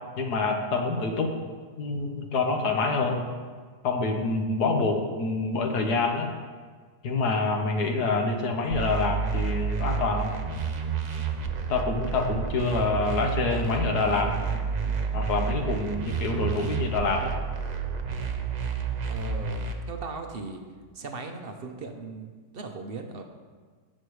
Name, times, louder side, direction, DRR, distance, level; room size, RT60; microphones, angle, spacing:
voice 1, 0.2-1.3 1.8-3.2 3.8-6.3 7.0-10.3 11.7-14.4 15.1-17.3, left 3 dB, 65° left, 2 dB, 1.6 m, -26 dB
sound 1, 8.7-19.7, right 5 dB, 80° right, 0.3 m, -30 dB
voice 2, 19.0-20.6 20.9-23.2, right 4 dB, 50° right, 4 dB, 0.7 m, -38 dB
16.5 x 6.5 x 3.2 m, 1.5 s
omnidirectional pair, 1.9 m